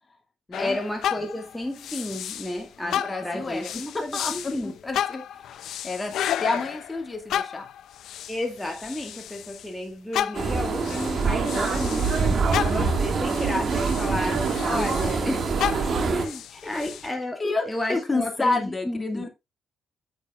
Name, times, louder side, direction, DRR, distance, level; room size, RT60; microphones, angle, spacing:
sound 1, 0.5-2.6 2.9-9.7 10.1-15.2 15.6-17.1, left 10 dB, 75° left, 0.6 m, -33 dB
voice 1, 0.6-4.7 8.3-15.5 16.0-19.2, left 1 dB, 5° left, 1.9 m, -32 dB
voice 2, 2.9-5.2 5.5-5.6 5.8-6.1 6.4-7.7 12.7-13.2 14.7-15.1 16.5-16.8 17.4-19.3, left 3 dB, 20° left, 2.3 m, -30 dB
sound 2, 10.3-16.3, right 4 dB, 50° right, 2.1 m, -25 dB
9.4 x 8.4 x 2.5 m
cardioid pair, 90°, 0 cm